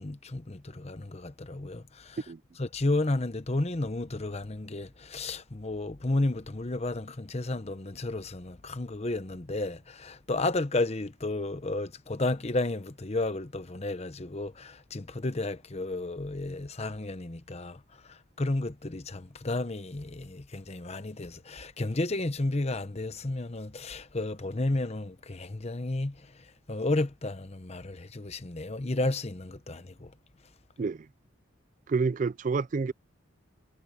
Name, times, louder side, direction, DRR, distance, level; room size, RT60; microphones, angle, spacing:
voice 1, 0.0-2.2 2.6-26.3 26.7-30.1, left 2 dB, 30° left, 0.9 m, -32 dB
voice 2, 31.9-32.9, right 4 dB, 40° right, 0.3 m, -28 dB
head